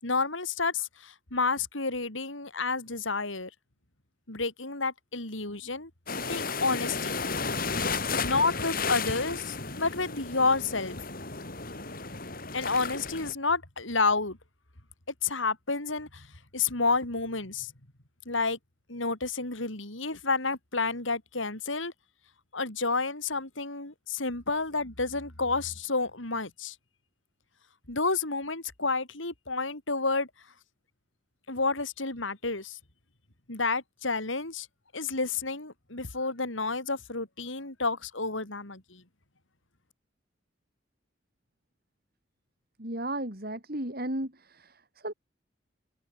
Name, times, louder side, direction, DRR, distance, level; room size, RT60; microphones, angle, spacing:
voice 1, 0.0-3.5 4.3-5.9 6.3-7.2 8.2-10.9 12.5-14.4 15.2-16.3 16.5-17.7 18.3-18.6 18.9-21.9 22.5-26.7 27.9-30.3 31.5-32.8 33.5-34.7 34.9-39.0, left 3 dB, 85° left, 4.8 m, -30 dB
sound 1, 6.1-13.3, left 4 dB, 50° left, 5.0 m, -33 dB
voice 2, 42.8-44.7 45.0-45.1, right 1 dB, 50° right, 7.1 m, -34 dB
open air
head